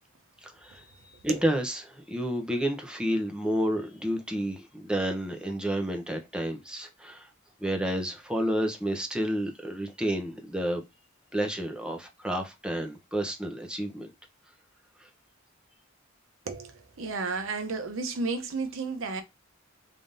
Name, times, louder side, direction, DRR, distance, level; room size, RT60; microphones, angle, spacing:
voice 1, 0.4-0.9 1.2-7.3 7.6-10.8 11.3-14.1 15.0-15.1, equal, 5° right, 0.8 m, -30 dB
voice 2, 16.5-19.2, right 4 dB, 90° right, 0.8 m, -32 dB
3.6 x 3.5 x 2.6 m
head